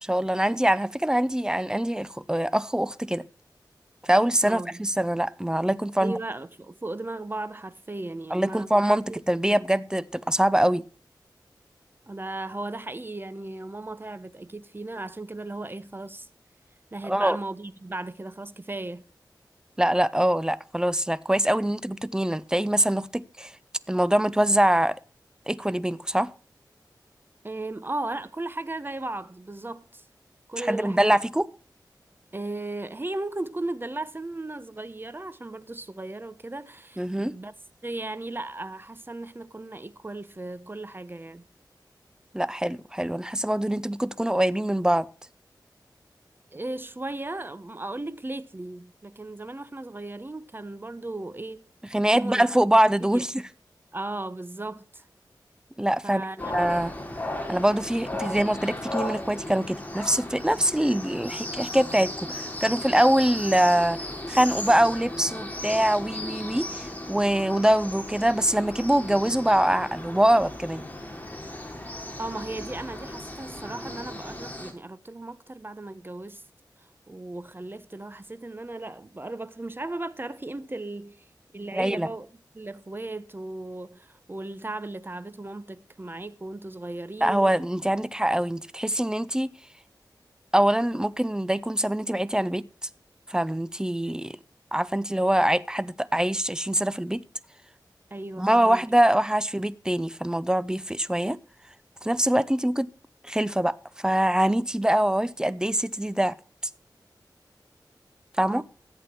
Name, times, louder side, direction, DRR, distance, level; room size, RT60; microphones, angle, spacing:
voice 1, 0.0-3.2 4.0-6.2 8.3-10.8 17.0-17.4 19.8-23.5 23.9-25.0 25.5-26.3 30.6-31.5 37.0-37.3 42.3-45.1 51.9-53.3 55.8-56.2 56.5-56.9 57.5-64.0 64.3-70.8 81.7-82.1 87.2-89.5 90.5-92.6 93.3-94.4 94.7-97.2 98.4-101.4 102.0-102.9 103.2-106.4 108.4-108.6, right 1 dB, 10° right, 0.6 m, -24 dB
voice 2, 4.4-4.8 6.0-8.8 9.1-9.6 12.1-16.3 16.9-19.0 27.4-30.0 30.5-31.2 32.3-37.5 37.8-41.5 46.5-51.6 52.1-52.5 53.1-53.2 53.9-55.1 56.0-56.5 72.2-76.4 76.8-81.2 81.5-82.3 82.5-87.5 98.1-98.9 108.5-108.6, right 2 dB, 30° right, 1.0 m, -36 dB
sound 1, 56.4-74.7, left 1 dB, 20° left, 3.1 m, -36 dB
14.5 x 8.2 x 4.5 m
wide cardioid pair, 65°, 8 cm